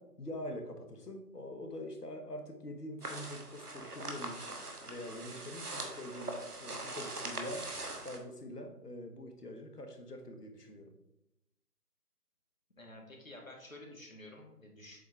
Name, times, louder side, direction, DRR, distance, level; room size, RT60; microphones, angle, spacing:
voice 1, 0.0-4.6 4.9-7.7 8.0-10.9, left 1 dB, 75° left, 4 dB, 1.3 m, -44 dB
sound 1, 3.0-8.2, right 2 dB, 75° right, 1.4 m, -42 dB
voice 2, 12.8-15.0, left 1 dB, 55° left, 0 dB, 1.8 m, -51 dB
7.6 x 4.4 x 3.5 m, 0.87 s
figure-of-eight pair, 180°, 47 cm